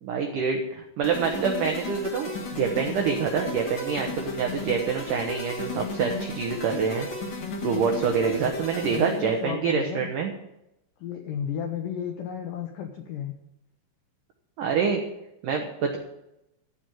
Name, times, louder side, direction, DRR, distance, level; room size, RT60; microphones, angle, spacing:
voice 1, 0.0-7.1 7.6-10.3 14.6-15.0 15.4-16.0, right 6 dB, 75° right, 3 dB, 1.9 m, -26 dB
sound 1, 1.0-9.4, left 3 dB, 60° left, 1.1 m, -35 dB
voice 2, 8.9-10.1 11.0-13.3, left 8 dB, 85° left, 5 dB, 1.9 m, -33 dB
14.0 x 5.3 x 9.0 m, 0.87 s
omnidirectional pair, 5.2 m